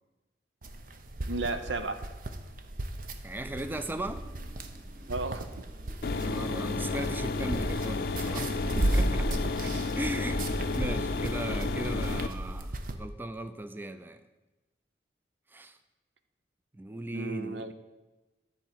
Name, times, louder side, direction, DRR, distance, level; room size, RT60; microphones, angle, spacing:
sound 1, 0.6-12.9, right 1 dB, 50° right, 0.7 m, -35 dB
voice 1, 1.3-2.0 5.1-5.6 17.1-17.7, right 3 dB, 90° right, 9 dB, 0.8 m, -34 dB
voice 2, 3.2-4.2 6.1-9.3 9.6-14.2 15.5-15.8 16.7-17.7, right 1 dB, 10° right, 9 dB, 0.4 m, -38 dB
sound 2, 3.8-7.8, equal, 15° left, 1.2 m, -53 dB
sound 3, 6.0-12.3, left 3 dB, 55° left, 0.5 m, -32 dB
10.5 x 4.6 x 7.3 m, 1.1 s
head